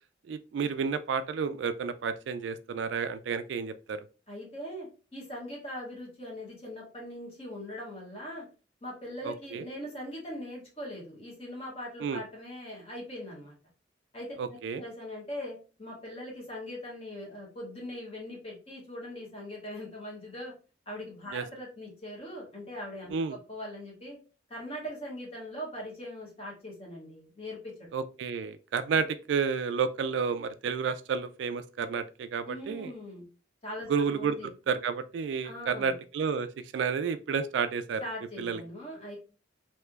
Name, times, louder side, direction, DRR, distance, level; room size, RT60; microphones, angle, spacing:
voice 1, 0.3-4.0 9.2-9.6 12.0-12.2 14.4-14.8 21.3-21.4 23.1-23.4 27.9-32.9 33.9-34.4 34.7-38.0 38.4-38.6, right 6 dB, 75° right, 0.3 m, -31 dB
voice 2, 4.3-8.5 8.8-13.6 14.1-14.3 14.7-20.5 20.9-24.2 24.5-27.9 32.4-33.2 33.6-34.5 35.4-35.9 38.0-39.2, left 1 dB, 30° left, 1.3 m, -41 dB
3.3 x 2.8 x 2.3 m
head